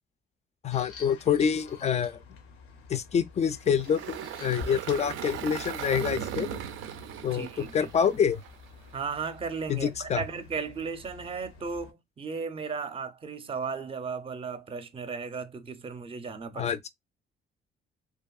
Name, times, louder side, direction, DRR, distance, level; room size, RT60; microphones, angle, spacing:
voice 1, 0.6-2.2 2.9-6.6 7.2-8.4 9.7-10.2 16.6-16.9, left 7 dB, 35° left, 0.4 m, -27 dB
sound 1, 0.7-11.9, left 4 dB, 90° left, 0.7 m, -49 dB
Engine, 3.7-8.9, right 9 dB, 80° right, 0.4 m, -38 dB
voice 2, 7.3-7.9 8.9-16.7, right 5 dB, 30° right, 0.5 m, -35 dB
2.7 x 2.5 x 2.3 m
cardioid pair, 90°, 20 cm